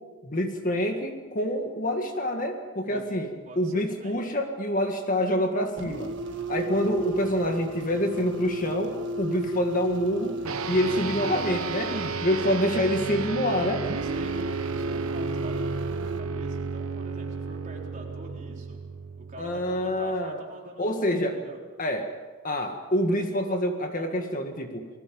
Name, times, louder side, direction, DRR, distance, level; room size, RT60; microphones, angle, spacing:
voice 1, 0.2-6.1 6.5-10.4 10.7-12.0 12.2-13.8 19.4-20.4 20.8-21.4 21.8-22.1 22.4-24.9, equal, 40° left, 4 dB, 1.9 m, -27 dB
voice 2, 3.5-4.2 12.2-12.6 13.9-18.8 19.2-21.6, right 1 dB, 35° right, -1 dB, 4.2 m, -44 dB
sound 1, 5.8-12.3 13.8-16.2, right 1 dB, 55° right, 1.5 m, -34 dB
sound 2, 10.4-20.1, right 4 dB, 75° right, 1.1 m, -32 dB
29.5 x 20.0 x 5.4 m, 1.4 s
head